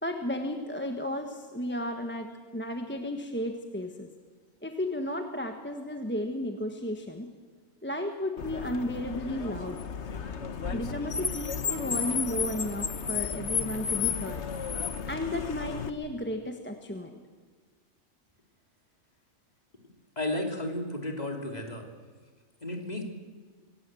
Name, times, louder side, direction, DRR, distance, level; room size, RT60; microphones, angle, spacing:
voice 1, 0.0-4.1 4.6-7.3 7.8-9.8 10.7-14.4 15.1-17.2, left 1 dB, 10° left, 4 dB, 1.3 m, -33 dB
Car, 8.4-15.9, left 6 dB, 55° left, 1.3 m, -33 dB
voice 2, 20.2-21.8 22.6-23.0, left 1 dB, 30° left, 2 dB, 3.3 m, -33 dB
25.5 x 17.5 x 7.8 m, 1.4 s
omnidirectional pair, 1.4 m